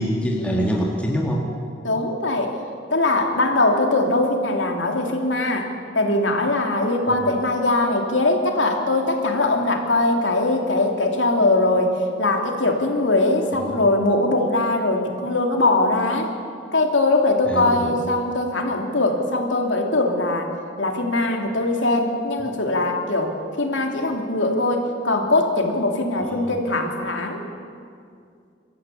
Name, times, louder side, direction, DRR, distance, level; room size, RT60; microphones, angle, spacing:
voice 1, 0.0-1.5 7.1-7.2 13.5-13.8 17.5-18.0 26.2-26.4, equal, 5° left, -2 dB, 2.1 m, -25 dB
voice 2, 1.8-2.5 2.9-5.7 5.9-16.3 16.7-20.5 20.8-23.3 23.6-27.4, left 2 dB, 85° left, 2 dB, 2.9 m, -21 dB
26.5 x 14.0 x 8.5 m, 2.3 s
head